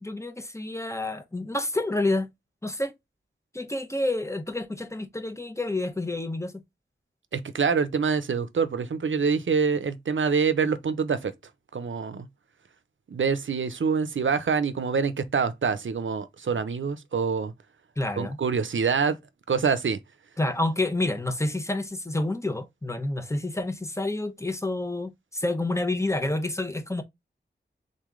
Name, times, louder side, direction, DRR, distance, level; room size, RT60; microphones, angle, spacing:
voice 1, 0.0-2.3 2.6-2.9 3.5-6.5 18.0-18.4 20.4-27.0, left 2 dB, 15° left, 1.0 m, -29 dB
voice 2, 7.3-11.3 11.7-12.3 13.1-17.5 18.2-19.2 19.5-20.0, right 5 dB, 90° right, 0.6 m, -25 dB
4.0 x 3.1 x 3.6 m
wide cardioid pair, 65°, 19 cm